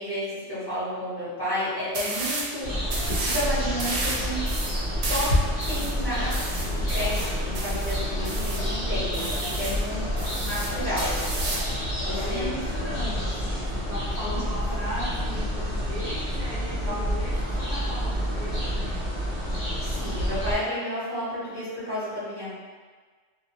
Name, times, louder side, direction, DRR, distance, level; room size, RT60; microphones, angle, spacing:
voice 1, 0.0-2.7 3.2-4.4 5.1-5.3 5.6-10.0 10.3-11.1 12.0-12.4 14.3-14.4 16.8-16.9 19.8-22.5, equal, 20° left, -13 dB, 1.0 m, -31 dB
sound 1, 1.9-2.5 2.9-3.5 3.8-8.7 9.1-9.8 10.2-11.7, right 2 dB, 75° right, 0.9 m, -32 dB
sound 2, 2.6-20.6, equal, 45° left, 0.7 m, -28 dB
sound 3, 5.6-13.6, left 2 dB, 75° left, 0.9 m, -43 dB
voice 2, 9.6-10.0 12.1-19.0, equal, 55° right, -10 dB, 0.6 m, -37 dB
2.4 x 2.4 x 2.8 m, 1.5 s
omnidirectional pair, 1.3 m